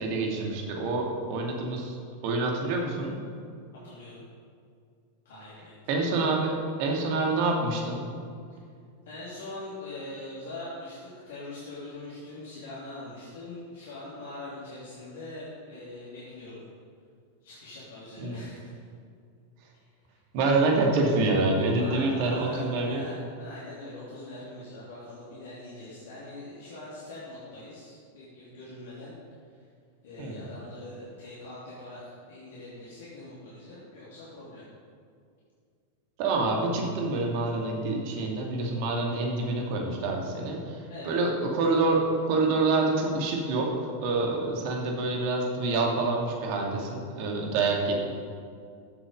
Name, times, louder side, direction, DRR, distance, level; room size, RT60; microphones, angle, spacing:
voice 1, 0.0-1.9 2.2-3.1 5.9-8.0 18.2-18.4 20.3-23.0 30.2-30.4 36.2-47.9, right 3 dB, 45° right, 0 dB, 2.5 m, -27 dB
voice 2, 3.7-4.2 5.2-5.7 8.5-8.6 9.1-16.6 17.4-18.7 21.8-29.1 29.5-29.6 30.0-34.7 40.9-41.2, left 2 dB, 60° left, -8 dB, 3.0 m, -42 dB
14.5 x 7.7 x 5.3 m, 2.3 s
figure-of-eight pair, 90°, 0 cm